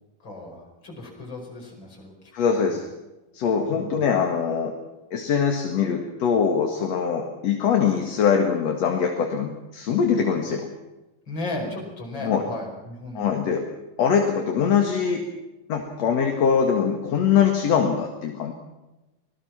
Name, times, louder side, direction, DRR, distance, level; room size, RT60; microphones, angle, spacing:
voice 1, 0.2-2.1 2.6-2.8 3.7-4.1 11.3-13.5, left 2 dB, 30° left, 1 dB, 5.8 m, -35 dB
voice 2, 2.3-2.8 3.3-4.7 5.1-10.7 12.2-12.4 13.1-13.6 14.0-15.3 15.7-18.5, left 7 dB, 50° left, 3 dB, 2.7 m, -22 dB
25.5 x 19.0 x 5.9 m, 1.0 s
omnidirectional pair, 4.3 m